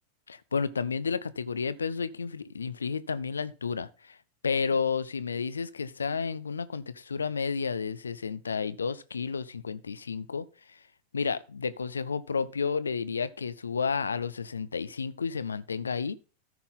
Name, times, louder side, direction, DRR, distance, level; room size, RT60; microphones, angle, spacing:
voice 1, 0.3-4.2 4.4-10.8 11.1-16.2, left 5 dB, 75° left, 0.5 m, -31 dB
13.5 x 5.6 x 3.8 m
figure-of-eight pair, 90°, 0 cm